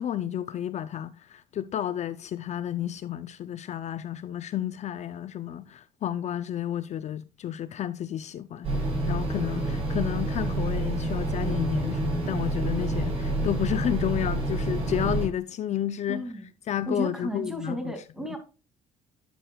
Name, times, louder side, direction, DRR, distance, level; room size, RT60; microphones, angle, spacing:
voice 1, 0.0-16.2 16.7-17.9, left 10 dB, 50° left, 0.5 m, -31 dB
sound 1, 8.6-15.3, right 1 dB, 40° right, 4.4 m, -28 dB
voice 2, 16.1-16.4 16.9-18.4, equal, 5° right, 2.4 m, -33 dB
11.0 x 6.5 x 2.3 m
cardioid pair, 95°, 15 cm